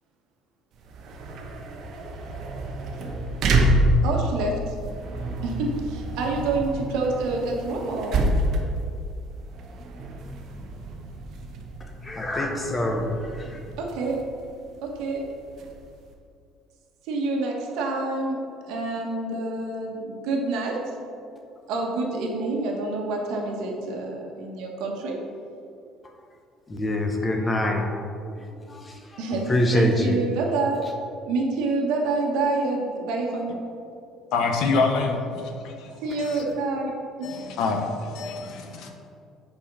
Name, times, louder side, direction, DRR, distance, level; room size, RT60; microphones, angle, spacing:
sound 1, 0.7-16.1, right 1 dB, 45° right, 1.0 m, -28 dB
voice 1, 4.0-4.7 5.4-8.2 13.8-14.2 14.8-15.2 17.0-20.8 21.7-25.1 29.2-30.8 31.2-33.6 36.0-36.9 37.2-37.4, right 3 dB, 70° right, 0 dB, 1.5 m, -27 dB
voice 2, 12.0-13.6 26.7-28.1 28.4-30.2 36.3-36.4, left 1 dB, 15° left, 3 dB, 0.8 m, -26 dB
voice 3, 34.3-35.9 36.2-36.4 37.2-38.9, left 4 dB, 60° left, 4 dB, 1.0 m, -26 dB
8.7 x 4.6 x 5.5 m, 2.5 s
cardioid pair, 165°, 0 cm